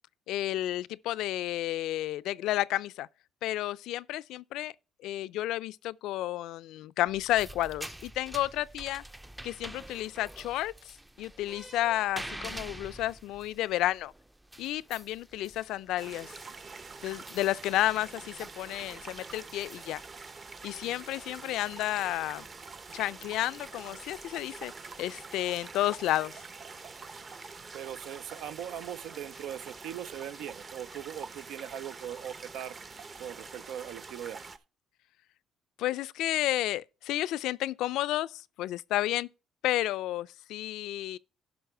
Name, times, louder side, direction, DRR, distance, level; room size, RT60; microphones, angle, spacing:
voice 1, 0.3-3.1 3.4-4.7 5.0-9.0 9.4-10.7 11.2-14.1 14.6-16.3 17.0-20.0 20.6-22.5 22.9-24.7 25.0-26.4 35.8-39.3 39.6-41.2, left 15 dB, 85° left, 0.4 m, -31 dB
sound 1, 7.1-25.2, right 1 dB, 10° right, 0.5 m, -48 dB
sound 2, 16.0-34.6, right 4 dB, 35° right, 0.8 m, -46 dB
voice 2, 27.7-32.8 33.2-34.5, right 10 dB, 80° right, 0.5 m, -40 dB
11.0 x 6.0 x 4.5 m
cardioid pair, 115°, 0 cm